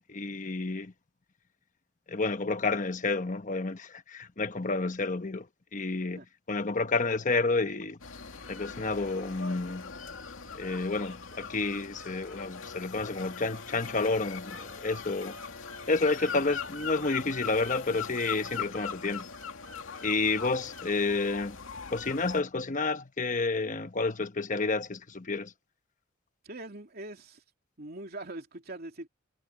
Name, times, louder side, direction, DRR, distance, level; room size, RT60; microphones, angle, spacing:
voice 1, 0.1-0.9 2.1-5.5 5.7-8.0 8.5-9.9 10.5-15.4 15.9-19.3 20.0-21.6 21.9-25.5, left 3 dB, 40° left, 1.0 m, -30 dB
sound 1, 8.0-22.4, left 6 dB, 85° left, 2.4 m, -41 dB
voice 2, 26.4-27.4 27.8-29.1, right 2 dB, 50° right, 3.0 m, -42 dB
head